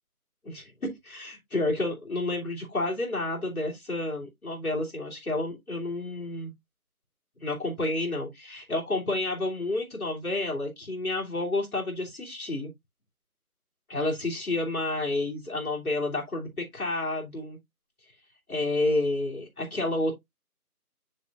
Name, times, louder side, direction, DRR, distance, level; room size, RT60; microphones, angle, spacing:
voice 1, 0.4-6.5 7.4-12.7 13.9-17.6 18.5-20.1, left 2 dB, 70° left, 3.0 m, -30 dB
7.6 x 6.5 x 2.5 m
figure-of-eight pair, 165°, 45 cm